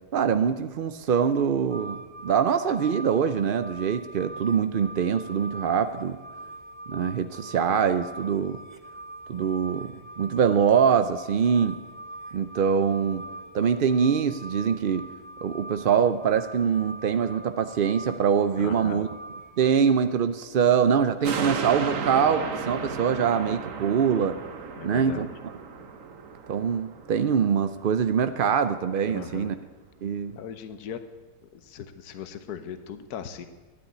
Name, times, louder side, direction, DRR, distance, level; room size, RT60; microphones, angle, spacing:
voice 1, 0.1-6.2 6.9-8.6 9.3-11.8 12.3-13.3 13.5-15.1 15.4-19.1 19.6-24.4 24.8-25.3 26.5-29.5 30.0-30.4, right 7 dB, 75° right, 10 dB, 0.4 m, -24 dB
sound 1, 1.7-19.9, right 2 dB, 25° right, 0.7 m, -43 dB
voice 2, 18.6-19.0 24.8-25.3 29.1-29.5 30.4-31.0 31.4-33.5, left 8 dB, 75° left, 10 dB, 1.4 m, -38 dB
sound 2, 21.2-27.9 28.3-28.4, right 5 dB, 55° right, 1.5 m, -34 dB
12.5 x 10.0 x 9.3 m, 1.3 s
omnidirectional pair, 1.7 m